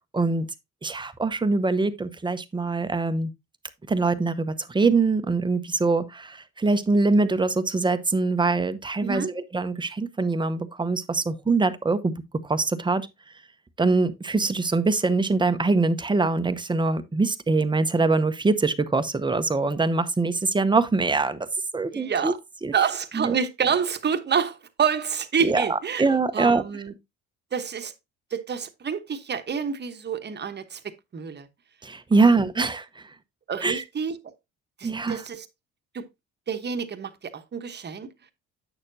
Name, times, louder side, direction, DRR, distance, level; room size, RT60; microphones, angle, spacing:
voice 1, 0.1-0.5 0.8-3.3 3.9-12.1 12.4-13.1 13.8-21.5 21.7-22.3 22.6-22.7 23.1-23.3 25.4-26.8 31.8-33.0 33.6-33.8 34.8-35.2, right 3 dB, 15° right, 0.8 m, -23 dB
voice 2, 21.9-22.4 22.7-26.0 26.3-26.9 27.5-27.9 28.3-30.8 31.1-31.5 33.5-34.2 34.8-35.4 35.9-36.0 36.5-38.1, right 7 dB, 35° right, 1.1 m, -28 dB
8.8 x 6.5 x 2.7 m
supercardioid pair, 85°, 31 cm